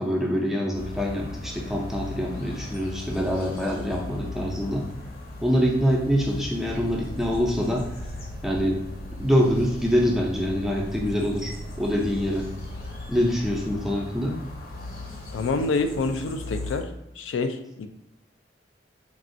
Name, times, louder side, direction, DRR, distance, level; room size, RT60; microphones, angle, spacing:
voice 1, 0.0-4.9 5.4-7.9 8.4-8.8 9.2-12.5 13.1-14.4, equal, ahead, -2 dB, 0.4 m, -25 dB
sound 1, 0.7-16.8, left 2 dB, 55° left, 0.7 m, -38 dB
sound 2, 6.7-13.8, right 1 dB, 70° right, 0.3 m, -41 dB
voice 2, 15.3-16.9 17.2-17.9, left 3 dB, 90° left, 8 dB, 0.3 m, -27 dB
3.5 x 2.3 x 2.5 m, 0.87 s
head